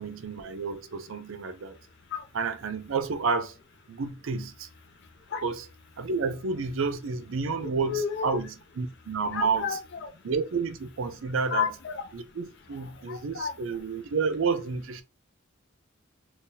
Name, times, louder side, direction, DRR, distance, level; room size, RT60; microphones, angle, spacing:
voice 1, 0.0-1.8 2.3-3.6 3.9-4.7 5.4-5.7 6.0-9.8 10.2-11.7 12.1-15.0, right 4 dB, 70° right, 0.5 m, -30 dB
voice 2, 7.6-8.4 9.3-10.1 11.5-12.0 13.1-13.5, left 7 dB, 60° left, 0.5 m, -31 dB
3.9 x 2.3 x 2.7 m
head